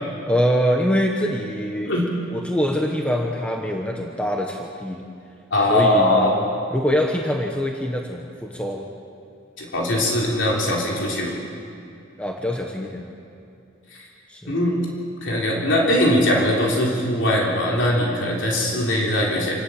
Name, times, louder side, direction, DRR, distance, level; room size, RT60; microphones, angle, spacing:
voice 1, 0.3-1.9 2.3-5.0 5.7-6.3 6.7-8.9 12.2-13.1 14.3-14.6 18.7-18.8, equal, 5° left, 1 dB, 1.3 m, -24 dB
voice 2, 5.5-6.5 9.6-11.4 13.9-14.0 14.5-14.8 15.2-19.5, left 1 dB, 70° left, -2 dB, 3.6 m, -21 dB
27.0 x 12.5 x 8.7 m, 2.6 s
head